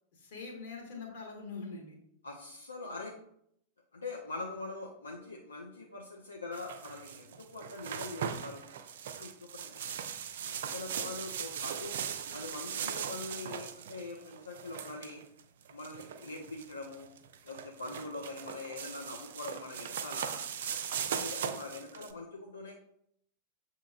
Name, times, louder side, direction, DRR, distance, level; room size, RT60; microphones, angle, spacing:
voice 1, 0.1-2.0, left 4 dB, 55° left, 0 dB, 1.3 m, -43 dB
voice 2, 2.2-3.1 3.9-8.6 9.2-10.0 10.4-11.9 12.3-15.2 15.7-17.1 17.4-20.4 21.1-22.7, left 3 dB, 75° left, 0 dB, 0.5 m, -43 dB
sound 1, 6.5-22.1, right 8 dB, 60° right, 0.3 m, -39 dB
6.9 x 2.8 x 2.4 m, 0.72 s
figure-of-eight pair, 90°, 0 cm